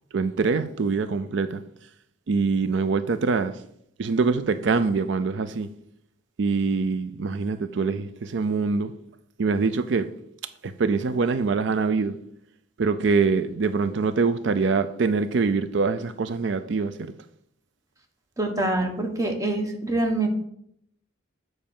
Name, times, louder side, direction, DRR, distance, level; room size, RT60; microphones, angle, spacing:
voice 1, 0.1-1.6 2.3-3.6 4.0-5.7 6.4-8.9 9.4-10.1 10.6-12.2 12.8-17.1, right 4 dB, 70° right, 0.4 m, -24 dB
voice 2, 18.4-20.3, right 2 dB, 15° right, 1.1 m, -25 dB
7.5 x 4.7 x 7.0 m
head